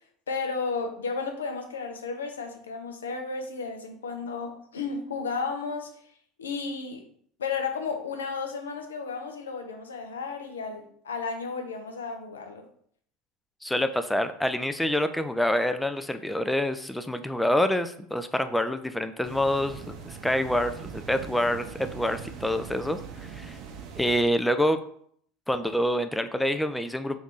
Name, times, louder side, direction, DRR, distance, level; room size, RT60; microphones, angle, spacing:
voice 1, 0.3-5.9 6.4-7.0 7.4-12.7, left 4 dB, 80° left, 5 dB, 0.5 m, -33 dB
voice 2, 13.6-23.6 24.0-24.8 25.5-27.2, left 1 dB, 5° left, 9 dB, 0.3 m, -27 dB
sound 1, 19.2-24.2, right 7 dB, 50° right, 0.6 m, -41 dB
2.9 x 2.6 x 3.6 m, 0.63 s
figure-of-eight pair, 75°, 0 cm